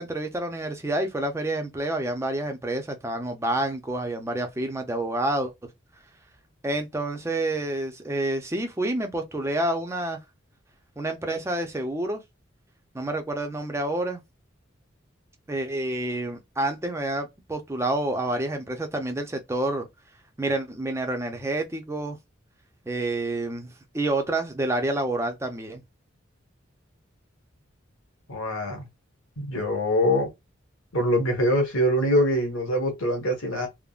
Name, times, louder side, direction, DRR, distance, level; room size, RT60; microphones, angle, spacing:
voice 1, 0.0-5.5 6.6-10.2 11.0-12.2 12.9-14.2 15.5-19.9 20.4-22.2 22.9-25.8, right 1 dB, 15° right, 0.6 m, -28 dB
voice 2, 28.3-28.9 29.4-30.3 30.9-33.7, equal, 85° left, 1.3 m, -24 dB
3.5 x 2.1 x 2.4 m
head